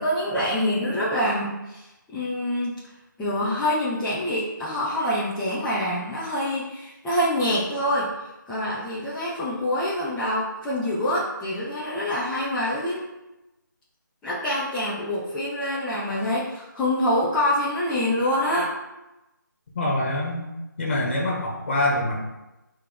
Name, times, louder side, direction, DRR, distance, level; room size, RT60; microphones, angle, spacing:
voice 1, 0.0-2.8 3.2-8.1 8.5-13.0 14.2-18.7, left 1 dB, 5° left, -11 dB, 0.6 m, -26 dB
voice 2, 19.7-20.4 20.8-22.2, left 1 dB, 35° left, -3 dB, 1.9 m, -25 dB
7.9 x 3.4 x 3.7 m, 0.98 s
figure-of-eight pair, 165°, 11 cm